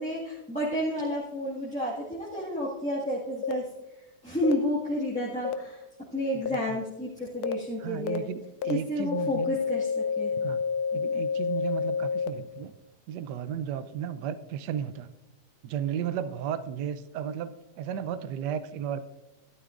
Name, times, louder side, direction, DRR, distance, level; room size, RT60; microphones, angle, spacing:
voice 1, 0.0-3.7 4.2-5.8 6.1-8.2 8.7-10.3, equal, 5° left, -7 dB, 1.6 m, -31 dB
sound 1, 3.4-3.5 4.4-4.5 5.4-5.5 6.5-6.6 7.4-7.5 8.1-8.2 8.6-8.7 9.1-12.3, left 6 dB, 70° left, 1.0 m, -28 dB
voice 2, 6.5-6.8 7.8-9.6 10.4-10.6 10.9-12.8 13.1-15.1 15.6-19.0, right 9 dB, 75° right, 12 dB, 1.2 m, -34 dB
12.5 x 12.0 x 2.5 m, 0.99 s
omnidirectional pair, 1.8 m